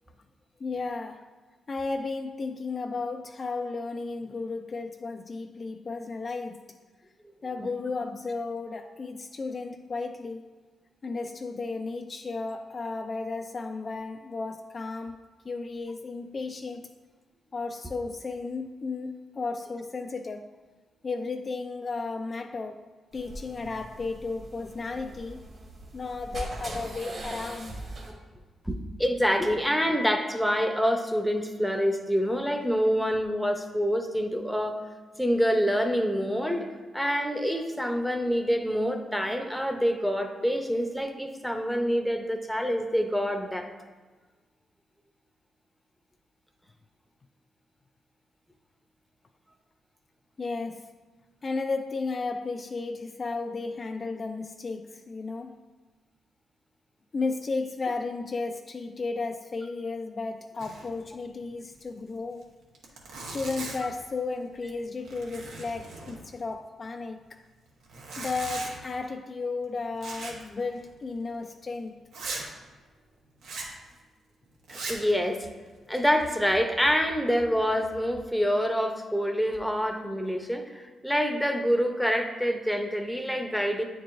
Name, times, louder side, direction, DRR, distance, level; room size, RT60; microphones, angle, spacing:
voice 1, 0.6-1.3 1.7-6.6 7.4-10.5 11.0-16.9 17.5-20.5 21.0-22.8 23.1-25.5 25.9-27.8 50.4-50.9 51.4-55.6 57.1-62.5 63.3-67.4 68.2-72.0, left 3 dB, 40° left, 0.3 m, -34 dB
sound 1, 23.1-28.1, right 1 dB, 50° right, 1.6 m, -41 dB
voice 2, 28.7-34.8 35.2-36.7 36.9-43.7 74.7-75.5 75.9-83.8, equal, ahead, 0.7 m, -26 dB
Zipper (clothing), 60.6-61.0 61.2-61.3 61.7-61.8 62.4-62.5 62.8-64.0 64.5-64.8 65.1-66.5 67.8-68.8 70.0-70.5 70.8-70.9 71.4-71.5 72.1-72.5 73.4-73.8 74.6-75.1 75.7-76.3, right 3 dB, 85° right, 1.0 m, -39 dB
8.6 x 4.6 x 2.6 m
cardioid pair, 80°, 0 cm